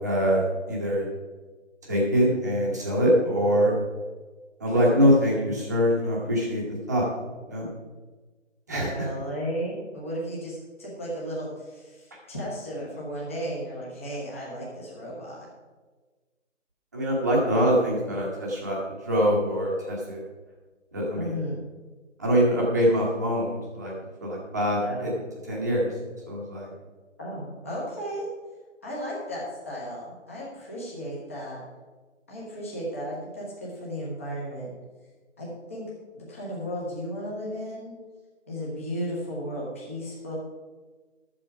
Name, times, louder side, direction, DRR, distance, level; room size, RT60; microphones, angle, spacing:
voice 1, 0.0-1.1 1.8-3.7 4.6-7.1 7.5-7.7 8.7-9.1 16.9-20.2 20.9-21.3 22.2-23.9 24.2-25.1 25.4-25.9 26.3-26.7, equal, 15° right, -4 dB, 1.3 m, -24 dB
voice 2, 8.7-15.5 21.2-21.6 24.8-25.1 27.2-28.3 28.8-31.6 32.3-34.7 35.4-37.9 38.5-40.4, equal, 10° left, -6 dB, 1.2 m, -34 dB
12.5 x 7.6 x 4.7 m, 1.3 s
figure-of-eight pair, 170°, 38 cm